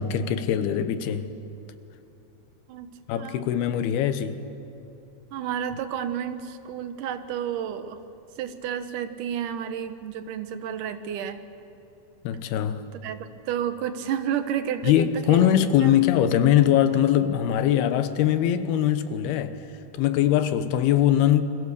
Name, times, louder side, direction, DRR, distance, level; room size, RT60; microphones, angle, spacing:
voice 1, 0.0-1.3 3.1-4.4 12.2-12.8 14.8-19.6 19.9-21.4, left 10 dB, 85° left, 3.0 m, -22 dB
voice 2, 2.7-3.5 5.3-8.0 8.4-11.4 13.0-15.9, right 9 dB, 70° right, 2.3 m, -31 dB
29.0 x 22.0 x 6.9 m
omnidirectional pair, 4.5 m